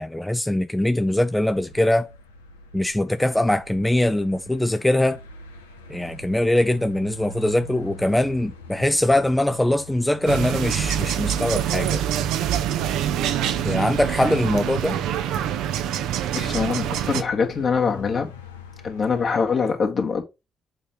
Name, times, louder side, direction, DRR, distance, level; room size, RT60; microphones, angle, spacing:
voice 1, 0.0-2.1 2.7-5.2 5.9-12.0 13.6-15.0, left 1 dB, 10° left, 0.6 m, -22 dB
sound 1, 1.1-19.3, left 1 dB, 90° left, 0.7 m, -44 dB
sound 2, 10.3-17.2, right 10 dB, 70° right, 0.7 m, -25 dB
voice 2, 16.3-18.3 18.8-20.2, left 5 dB, 55° left, 2.0 m, -23 dB
7.4 x 4.4 x 4.0 m
figure-of-eight pair, 40°, 0 cm